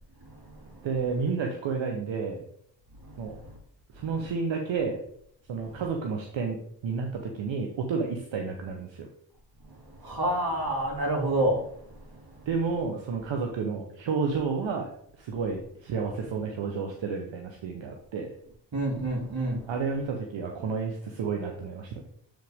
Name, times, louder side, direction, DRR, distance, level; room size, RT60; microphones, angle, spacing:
voice 1, 0.8-2.4 3.2-3.4 3.9-5.0 5.5-6.6 6.8-9.1 12.5-14.9 15.2-18.3 19.7-21.9, right 5 dB, 80° right, 2 dB, 0.9 m, -31 dB
voice 2, 10.0-11.6 18.7-19.6, right 1 dB, 55° right, 0 dB, 2.7 m, -27 dB
7.5 x 5.0 x 3.5 m, 0.68 s
supercardioid pair, 45°, 45 cm